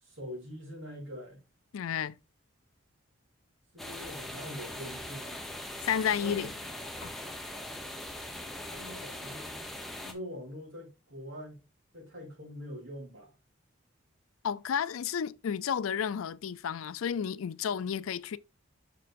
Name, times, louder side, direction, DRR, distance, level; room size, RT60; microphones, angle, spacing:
voice 1, 0.0-1.4 3.7-5.4 6.1-6.5 8.4-9.6 9.9-11.6 11.9-13.3, equal, 70° right, 3.2 m, -44 dB
voice 2, 1.7-2.2 5.8-6.5 7.0-7.1 14.4-18.4, left 8 dB, 85° left, 0.4 m, -31 dB
sound 1, 3.8-10.1, left 1 dB, ahead, 0.8 m, -41 dB
6.7 x 6.2 x 2.5 m
head